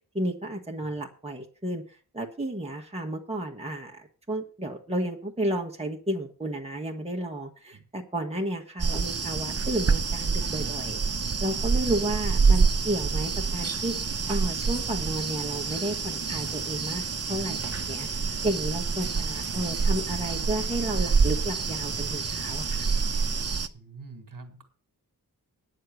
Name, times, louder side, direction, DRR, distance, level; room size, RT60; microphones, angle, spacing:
voice 1, 0.1-1.8 2.1-11.0 11.4-14.0 14.3-22.9, right 1 dB, 15° right, 1 dB, 1.5 m, -32 dB
sound 1, 8.8-23.7, right 5 dB, 40° right, 0.8 m, -27 dB
voice 2, 23.7-24.6, right 4 dB, 55° right, 8 dB, 2.0 m, -46 dB
9.6 x 6.7 x 7.8 m, 0.40 s
wide cardioid pair, 85°, 39 cm